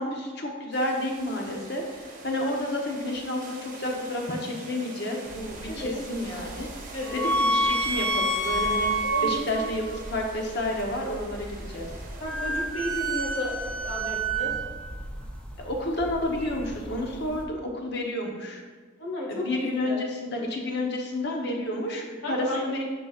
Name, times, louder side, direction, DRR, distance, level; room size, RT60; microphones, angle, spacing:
voice 1, 0.0-11.9 15.6-18.6 19.3-22.8, left 1 dB, 55° left, 1 dB, 1.0 m, -30 dB
sound 1, 0.7-14.3, right 3 dB, 40° right, 0.9 m, -45 dB
sound 2, 5.3-17.4, right 2 dB, 5° left, 0.6 m, -30 dB
voice 2, 5.7-6.0 6.9-7.2 9.1-9.7 12.2-14.6 19.0-20.0 22.2-22.6, left 1 dB, 85° left, -3 dB, 1.9 m, -33 dB
9.8 x 5.8 x 2.5 m, 1.5 s
head